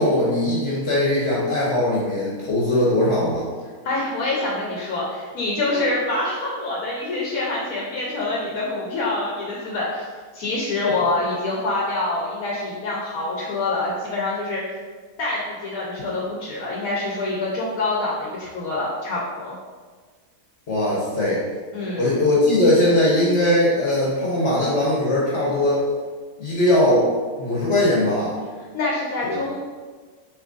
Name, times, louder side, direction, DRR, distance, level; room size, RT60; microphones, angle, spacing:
voice 1, 0.0-3.5 10.8-10.9 20.7-21.4 22.0-25.8 26.4-27.1 27.4-28.3 29.2-29.4, left 1 dB, 50° left, -6 dB, 1.2 m, -20 dB
voice 2, 3.8-10.0 10.3-14.8 15.2-19.5 21.7-22.2 28.7-29.6, left 2 dB, 75° left, -5 dB, 1.3 m, -26 dB
6.3 x 3.2 x 2.6 m, 1.5 s
omnidirectional pair, 1.6 m